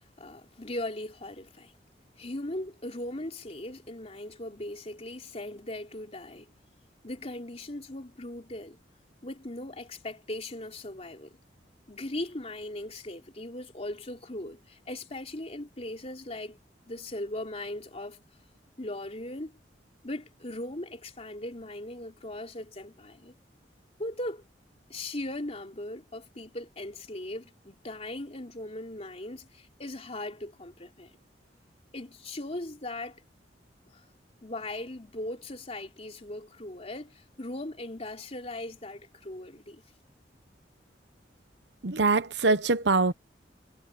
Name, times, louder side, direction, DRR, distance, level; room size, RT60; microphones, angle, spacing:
voice 1, 0.2-1.7 2.2-6.5 7.0-8.8 9.2-11.3 11.9-16.6 16.9-18.2 18.8-19.6 20.0-23.3 24.0-24.4 24.9-31.1 31.9-33.2 33.9-34.0 34.4-39.8, left 1 dB, 35° left, 3.4 m, -39 dB
voice 2, 41.8-43.1, right 3 dB, 75° right, 1.0 m, -23 dB
head